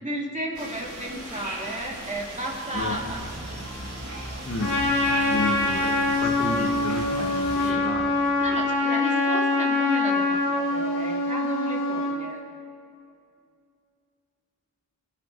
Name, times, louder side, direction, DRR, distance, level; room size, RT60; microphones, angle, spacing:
voice 1, 0.0-3.2 6.5-6.6 7.6-7.9 8.4-12.4, right 1 dB, 25° right, -3 dB, 2.8 m, -33 dB
sound 1, 0.5-7.7, right 1 dB, 75° right, 3.8 m, -39 dB
sound 2, 2.7-8.9, right 1 dB, 40° right, 1.6 m, -40 dB
voice 2, 4.4-4.8 5.2-8.2, left 2 dB, 50° left, 2 dB, 1.9 m, -31 dB
Trumpet, 4.6-12.2, left 2 dB, 80° left, 2.5 m, -24 dB
25.5 x 8.7 x 4.8 m, 2.4 s
wide cardioid pair, 55°, 31 cm